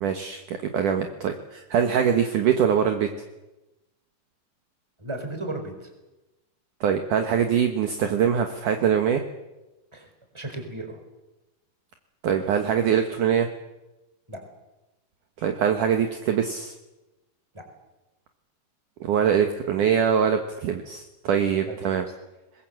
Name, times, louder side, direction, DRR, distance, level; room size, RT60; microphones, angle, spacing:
voice 1, 0.0-3.1 6.8-9.2 12.2-13.5 15.4-16.7 19.0-22.0, right 8 dB, 70° right, 6 dB, 2.1 m, -23 dB
voice 2, 5.0-5.9 9.9-10.1 10.3-11.0 14.3-14.4 17.5-17.6 21.6-21.8, right 2 dB, 5° right, 4 dB, 3.9 m, -34 dB
24.0 x 21.0 x 7.7 m, 1.0 s
omnidirectional pair, 5.4 m